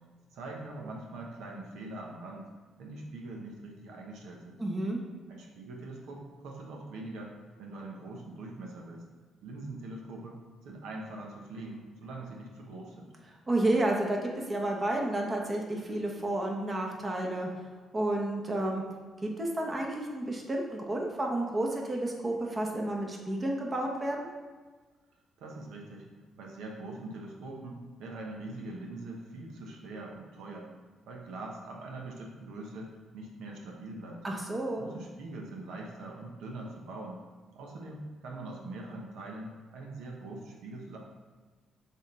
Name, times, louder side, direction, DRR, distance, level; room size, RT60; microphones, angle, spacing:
voice 1, 0.3-2.5 2.8-4.6 5.3-7.3 7.6-9.0 9.4-10.4 10.6-13.1 25.4-26.1 26.4-30.7 31.1-34.2 34.8-37.2 37.5-41.0, right 2 dB, 85° right, 0 dB, 1.0 m, -43 dB
voice 2, 4.6-5.0 13.5-17.5 17.9-18.8 19.2-24.3 34.2-34.8, right 1 dB, 25° right, 0 dB, 1.0 m, -31 dB
6.3 x 3.6 x 4.2 m, 1.4 s
cardioid pair, 90°, 0 cm